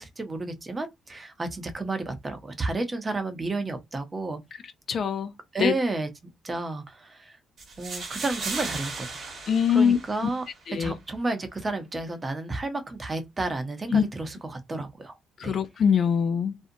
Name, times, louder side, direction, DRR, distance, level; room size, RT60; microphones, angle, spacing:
voice 1, 0.0-4.4 5.5-6.1 6.4-7.4 7.8-9.3 9.7-10.4 10.8-15.2 15.4-15.6, right 2 dB, 25° right, 0.7 m, -31 dB
voice 2, 4.9-5.3 5.6-5.8 9.5-10.3 10.7-10.9 13.9-14.0 15.4-16.5, left 7 dB, 55° left, 0.3 m, -23 dB
sound 1, 7.6-10.6, right 4 dB, 55° right, 1.1 m, -36 dB
2.5 x 2.1 x 2.6 m
cardioid pair, 90°, 0 cm